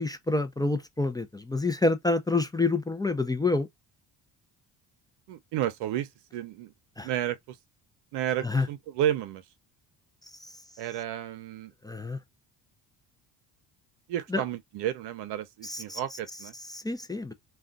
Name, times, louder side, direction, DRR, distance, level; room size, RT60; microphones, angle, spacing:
voice 1, 0.0-3.7 7.0-7.1 8.4-8.7 10.4-10.5 11.8-12.2 14.3-14.4 15.6-16.0 16.7-17.3, left 3 dB, 10° left, 0.5 m, -28 dB
voice 2, 5.3-6.7 7.0-7.6 8.1-9.4 10.8-11.7 14.1-16.5, right 11 dB, 75° right, 0.7 m, -32 dB
2.3 x 2.3 x 3.8 m
supercardioid pair, 75°, 41 cm